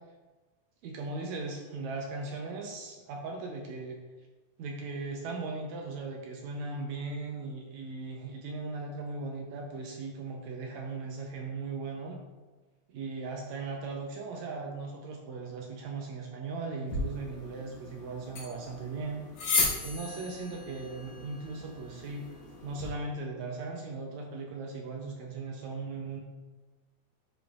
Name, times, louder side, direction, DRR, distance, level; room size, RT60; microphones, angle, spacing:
voice 1, 0.8-4.0 4.6-12.2 12.9-19.2 19.8-22.3 22.6-26.2, right 3 dB, 75° right, 0 dB, 1.7 m, -38 dB
sound 1, 16.9-22.9, left 3 dB, 80° left, 3.3 m, -35 dB
10.0 x 5.0 x 2.4 m, 1.2 s
omnidirectional pair, 3.8 m